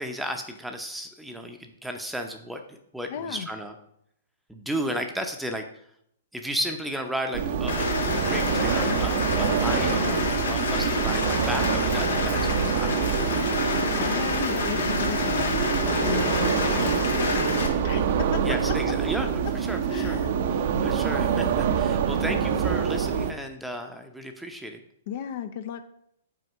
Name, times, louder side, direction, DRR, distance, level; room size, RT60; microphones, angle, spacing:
voice 1, 0.0-3.7 4.5-5.7 6.3-13.1 18.4-20.2 20.5-24.8, equal, 5° right, 4 dB, 0.7 m, -34 dB
voice 2, 3.1-3.5 9.8-10.3 13.3-13.5 13.9-15.6 16.0-17.6 17.8-18.4 19.9-20.3 25.1-25.9, left 9 dB, 50° left, 8 dB, 0.5 m, -34 dB
sound 1, 7.3-23.3, right 7 dB, 55° right, 0.7 m, -26 dB
Rain, 7.7-17.7, left 4 dB, 70° left, 2.0 m, -28 dB
6.3 x 4.2 x 6.2 m, 0.72 s
figure-of-eight pair, 115°, 0 cm